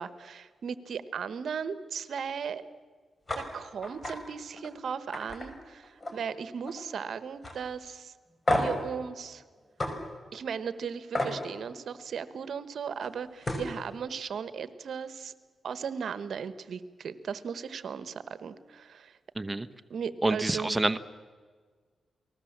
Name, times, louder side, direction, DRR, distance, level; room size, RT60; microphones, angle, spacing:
voice 1, 0.0-2.6 3.4-8.1 8.5-9.4 10.3-15.3 15.6-19.2 19.9-20.8, right 6 dB, 75° right, 13 dB, 1.2 m, -37 dB
sound 1, 3.3-3.4 3.8-4.2 4.6-4.7 5.1-6.3 6.6-7.0 7.4-7.6 8.5-8.8 9.8-9.9 11.1-11.4 13.0-13.1 13.4-13.7, left 1 dB, 30° left, 5.0 m, -30 dB
voice 2, 19.4-19.7 20.2-21.0, right 2 dB, 20° right, 9 dB, 0.9 m, -27 dB
29.5 x 20.0 x 7.4 m, 1.5 s
cardioid pair, 85°, 0 cm